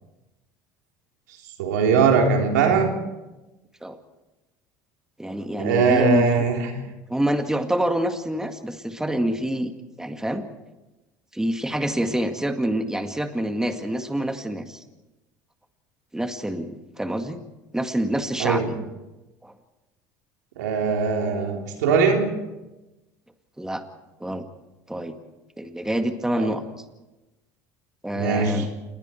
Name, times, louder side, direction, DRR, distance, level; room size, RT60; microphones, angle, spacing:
voice 1, 1.6-2.9 5.6-6.7 18.4-18.7 20.6-22.3 26.4-26.5 28.1-28.6, right 5 dB, 85° right, 2 dB, 3.5 m, -21 dB
voice 2, 5.2-6.3 7.1-9.7 10.0-10.4 11.3-14.8 16.1-17.4 17.7-18.8 19.4-19.5 23.6-23.8 24.2-24.4 24.9-25.2 25.6-26.6 28.0-28.7, right 1 dB, 5° right, 6 dB, 2.0 m, -26 dB
28.5 x 20.5 x 4.5 m, 1.0 s
hypercardioid pair, 80°, 9 cm